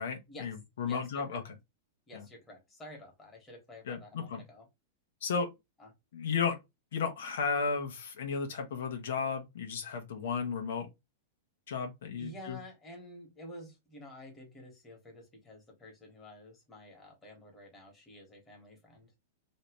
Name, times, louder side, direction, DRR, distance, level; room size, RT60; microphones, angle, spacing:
voice 1, 0.0-1.4 3.9-4.4 5.2-5.5 6.1-6.6 6.9-10.9 11.7-12.6, left 5 dB, 80° left, 1.0 m, -34 dB
voice 2, 0.8-1.4 2.1-4.7 5.8-5.9 12.2-19.2, left 1 dB, 15° left, 1.6 m, -50 dB
3.2 x 2.7 x 3.1 m
supercardioid pair, 150°, 0 cm